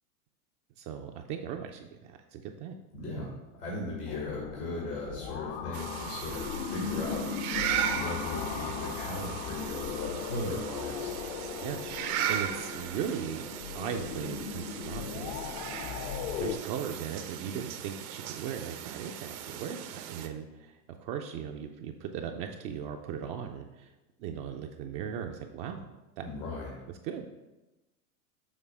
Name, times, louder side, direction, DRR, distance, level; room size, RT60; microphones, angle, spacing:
voice 1, 0.8-2.8 11.4-16.0 16.4-23.9 24.2-25.9 26.2-26.3 27.0-27.4, right 8 dB, 35° right, 4 dB, 0.4 m, -38 dB
voice 2, 2.9-3.3 3.6-7.3 7.9-11.2 26.2-26.7, left 2 dB, 90° left, -3 dB, 1.9 m, -37 dB
sound 1, 4.1-16.6, left 7 dB, 50° left, 0.6 m, -38 dB
sound 2, 5.7-20.3, right 10 dB, 70° right, 0.8 m, -37 dB
7.2 x 3.2 x 5.3 m, 1.0 s
hypercardioid pair, 115°, 46 cm